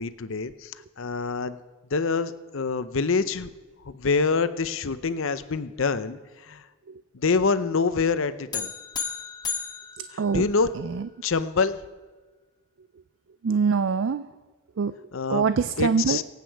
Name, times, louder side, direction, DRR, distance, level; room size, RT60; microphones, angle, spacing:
voice 1, 0.0-1.6 1.9-3.5 3.9-6.6 7.1-8.7 10.1-10.7 11.2-11.8 15.1-15.5 15.8-16.2, left 4 dB, 65° left, 13 dB, 0.6 m, -26 dB
sound 1, 8.5-11.0, left 6 dB, 20° left, 1.1 m, -34 dB
voice 2, 13.4-14.3 14.8-14.9 15.3-16.2, right 5 dB, 55° right, 13 dB, 0.4 m, -23 dB
23.5 x 8.4 x 4.6 m, 1.3 s
head